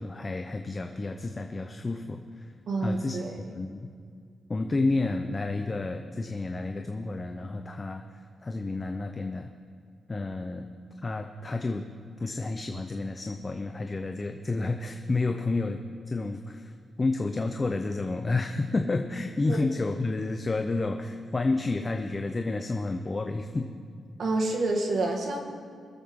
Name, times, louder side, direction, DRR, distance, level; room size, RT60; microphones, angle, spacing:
voice 1, 0.0-2.5 2.8-3.9 4.5-8.1 8.4-9.5 10.1-10.7 11.0-11.9 12.2-15.8 16.1-16.7 17.0-23.7, left 3 dB, 30° left, 5 dB, 0.7 m, -30 dB
voice 2, 2.7-3.3 19.5-19.6 24.2-25.4, right 2 dB, 65° right, 2 dB, 1.7 m, -28 dB
22.5 x 7.5 x 3.7 m, 2.2 s
cardioid pair, 85°, 0 cm